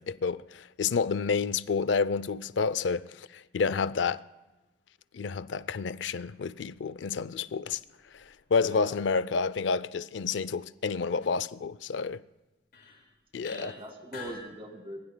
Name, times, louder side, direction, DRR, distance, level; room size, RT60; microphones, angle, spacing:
voice 1, 0.0-4.2 5.1-7.8 8.1-8.2 8.5-12.2 13.3-13.7, left 5 dB, 80° left, 0.5 m, -29 dB
sound 1, 5.5-9.0 12.0-12.1 12.7-13.1 13.4-14.4, left 4 dB, 55° left, 6.2 m, -51 dB
voice 2, 8.6-9.0 13.5-15.0, right 1 dB, 30° right, 2.1 m, -42 dB
26.0 x 21.0 x 2.2 m
head